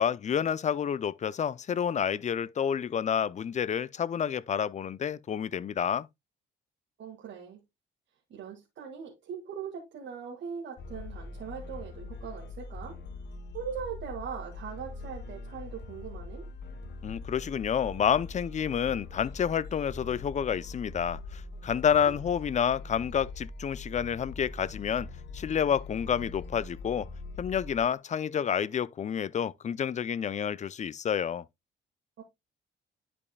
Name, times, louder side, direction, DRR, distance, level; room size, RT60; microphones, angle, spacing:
voice 1, 0.0-6.1 17.0-25.1 25.3-27.1 27.4-31.4, left 8 dB, 35° left, 0.5 m, -29 dB
voice 2, 7.0-7.6 8.3-13.0 13.5-16.5 22.0-22.1 32.2-32.3, right 7 dB, 70° right, 1.8 m, -40 dB
sound 1, 10.8-27.9, left 3 dB, 60° left, 1.0 m, -42 dB
11.0 x 5.3 x 2.2 m
cardioid pair, 90°, 20 cm